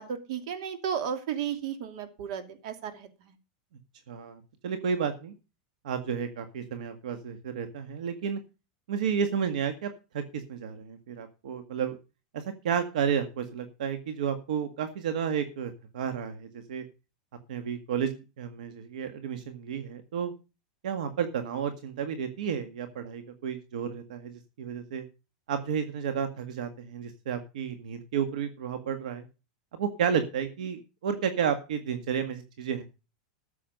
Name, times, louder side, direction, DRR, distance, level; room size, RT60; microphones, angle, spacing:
voice 1, 0.0-3.3, right 8 dB, 60° right, 8 dB, 2.6 m, -34 dB
voice 2, 4.1-5.3 5.8-8.4 8.9-12.0 12.3-16.8 17.5-20.3 20.8-25.1 25.5-29.2 29.8-32.8, right 7 dB, 85° right, 8 dB, 1.8 m, -32 dB
14.0 x 7.3 x 5.3 m, 0.31 s
supercardioid pair, 155°, 4 cm